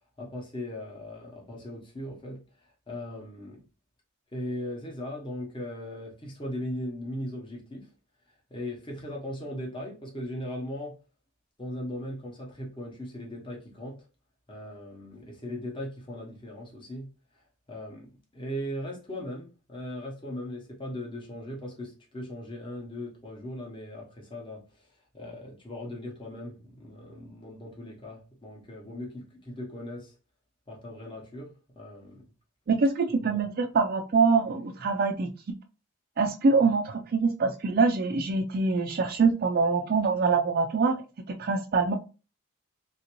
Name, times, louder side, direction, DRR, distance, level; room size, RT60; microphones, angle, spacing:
voice 1, 0.2-2.4 2.9-3.6 4.3-7.9 8.5-11.0 11.6-14.0 14.5-17.1 17.7-24.9 25.1-30.1 30.7-32.2 33.2-33.4, left 1 dB, 25° left, 0.8 m, -38 dB
voice 2, 32.7-35.3 36.2-41.0 41.4-41.9, right 4 dB, 45° right, 0.3 m, -24 dB
3.3 x 2.5 x 3.0 m
head